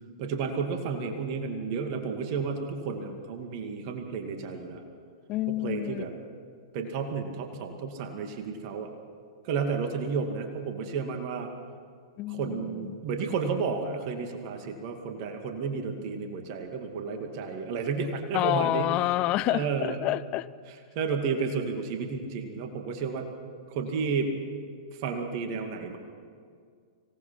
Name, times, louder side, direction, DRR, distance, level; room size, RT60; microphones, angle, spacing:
voice 1, 0.2-4.8 5.6-6.1 6.7-8.9 9.4-11.5 12.3-18.9 19.5-20.0 21.0-23.3 23.7-24.3 25.0-26.0, right 5 dB, 45° right, 4 dB, 2.3 m, -32 dB
voice 2, 5.3-6.0 12.2-13.0 18.3-20.5, left 16 dB, 35° left, 16 dB, 0.6 m, -28 dB
25.5 x 18.0 x 5.8 m, 2.1 s
figure-of-eight pair, 105°, 3 cm